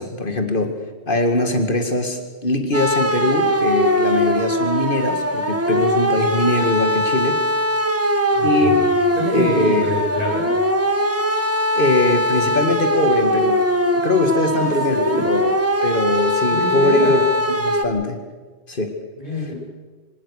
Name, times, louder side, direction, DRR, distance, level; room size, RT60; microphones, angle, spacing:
voice 1, 0.0-7.4 8.4-9.9 11.7-13.6 13.9-15.5 15.8-17.2 17.5-18.2 18.7-19.0, left 2 dB, 50° left, 6 dB, 2.3 m, -21 dB
sound 1, 2.7-17.8, equal, 15° right, 1.5 m, -20 dB
voice 2, 8.4-8.8 9.2-10.6 14.6-15.3 16.5-17.2 19.2-19.6, left 1 dB, 35° left, -3 dB, 7.0 m, -25 dB
25.0 x 18.5 x 6.5 m, 1.3 s
omnidirectional pair, 1.1 m